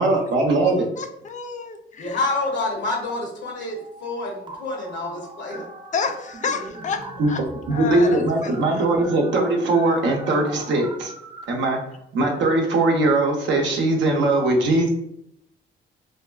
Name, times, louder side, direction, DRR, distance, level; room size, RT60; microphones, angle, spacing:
voice 1, 0.0-0.9 7.2-11.1 11.5-11.8 12.1-14.9, right 2 dB, 70° right, 2 dB, 0.6 m, -20 dB
voice 2, 1.0-2.2 5.9-7.4 7.7-8.5, left 5 dB, 40° left, 6 dB, 0.4 m, -29 dB
voice 3, 2.0-5.7, left 2 dB, 65° left, 0 dB, 0.7 m, -28 dB
sound 1, 2.2-3.2 3.4-11.4, right 1 dB, 25° right, 0.4 m, -40 dB
2.6 x 2.2 x 2.3 m, 0.76 s
cardioid pair, 90°, 20 cm